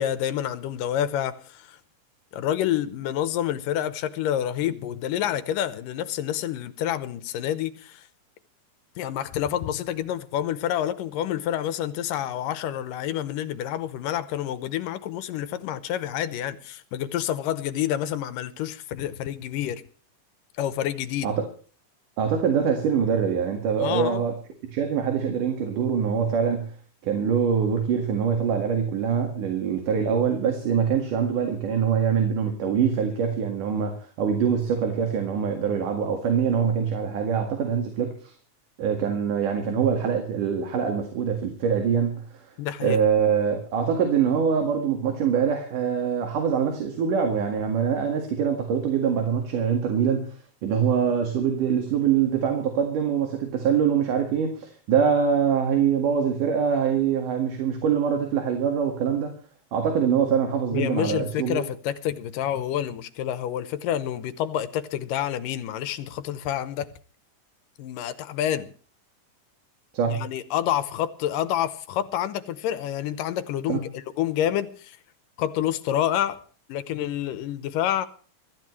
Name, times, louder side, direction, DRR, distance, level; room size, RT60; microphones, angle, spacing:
voice 1, 0.0-1.8 2.3-8.0 9.0-19.8 20.6-21.3 23.8-24.2 42.6-43.0 60.7-66.9 67.8-68.7 70.1-75.0 75.4-76.4 76.7-78.1, left 11 dB, 90° left, 2.6 m, -28 dB
voice 2, 22.2-24.3 24.7-26.7 27.0-38.3 38.8-42.4 42.8-50.4 50.6-59.3 59.7-61.6 69.9-70.3 73.7-73.8, right 7 dB, 70° right, 3.4 m, -24 dB
24.0 x 13.5 x 3.2 m
omnidirectional pair, 3.8 m